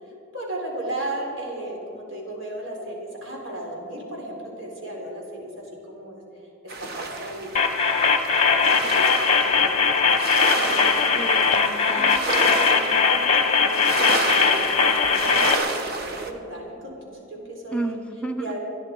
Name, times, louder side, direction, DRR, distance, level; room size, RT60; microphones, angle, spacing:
voice 1, 0.3-6.2 6.6-7.5 8.4-11.2 11.8-17.0 17.3-18.0 18.4-18.6, right 1 dB, 65° right, -2 dB, 4.1 m, -35 dB
sound 1, 6.7-16.3, right 2 dB, 50° right, 1.2 m, -30 dB
sound 2, 7.5-15.5, left 5 dB, 30° left, 0.9 m, -20 dB
voice 2, 11.2-12.1 17.7-18.6, right 1 dB, 5° left, 7 dB, 0.8 m, -31 dB
25.0 x 11.0 x 4.7 m, 2.9 s
head